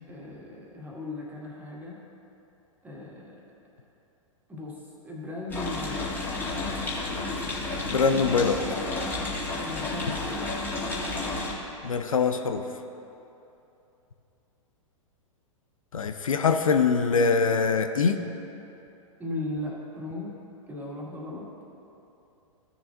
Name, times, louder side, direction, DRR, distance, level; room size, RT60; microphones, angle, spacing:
voice 1, 0.1-2.0 2.8-3.4 4.5-4.8 5.0-6.2 6.5-6.7 9.6-10.5 19.2-20.3 20.7-21.5, left 2 dB, 10° right, -4 dB, 2.1 m, -37 dB
sound 1, 5.5-11.5, left 2 dB, 10° left, 2.2 m, -31 dB
voice 2, 7.9-8.6 11.8-12.6 15.9-18.2, left 5 dB, 80° left, 7 dB, 0.6 m, -23 dB
15.5 x 6.9 x 2.6 m, 2.9 s
figure-of-eight pair, 105°, 17 cm